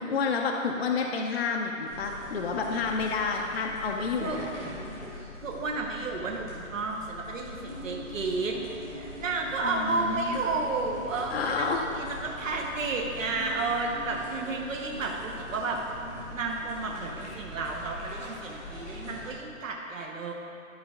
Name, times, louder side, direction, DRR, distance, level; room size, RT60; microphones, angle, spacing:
voice 1, 0.0-4.5 9.6-10.4 11.3-11.8, left 4 dB, 50° left, 1 dB, 0.6 m, -29 dB
sound 1, 1.8-19.3, left 1 dB, 5° left, 0.6 m, -42 dB
voice 2, 5.4-8.6 8.9-11.7 11.9-15.8 16.3-20.3, right 3 dB, 65° right, 0 dB, 1.0 m, -32 dB
12.0 x 4.8 x 3.6 m, 2.6 s
hypercardioid pair, 170°, 42 cm